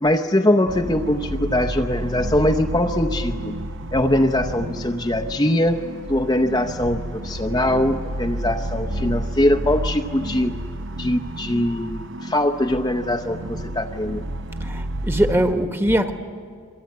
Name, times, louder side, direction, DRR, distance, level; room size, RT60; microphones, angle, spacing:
voice 1, 0.0-3.6 3.9-5.8 6.1-10.6 11.0-14.2, left 1 dB, 20° left, 4 dB, 0.7 m, -22 dB
sound 1, 0.7-15.5, right 1 dB, 55° right, 0.9 m, -31 dB
voice 2, 14.6-16.1, right 1 dB, 10° right, 7 dB, 1.3 m, -21 dB
27.5 x 23.5 x 9.4 m, 2.1 s
head